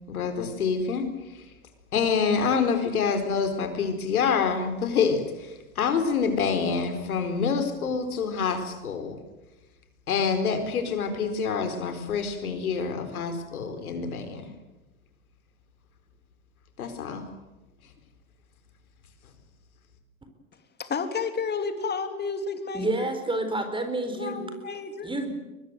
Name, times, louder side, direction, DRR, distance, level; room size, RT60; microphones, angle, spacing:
voice 1, 0.1-1.1 1.9-9.2 10.1-14.5 16.8-17.3, left 5 dB, 80° left, 8 dB, 4.4 m, -27 dB
voice 2, 20.8-23.1 24.1-25.1, left 5 dB, 25° left, 8 dB, 3.3 m, -31 dB
voice 3, 22.7-24.5 25.0-25.3, right 2 dB, 10° right, 8 dB, 4.2 m, -29 dB
24.0 x 21.0 x 7.8 m, 1.1 s
hypercardioid pair, 100°, 43 cm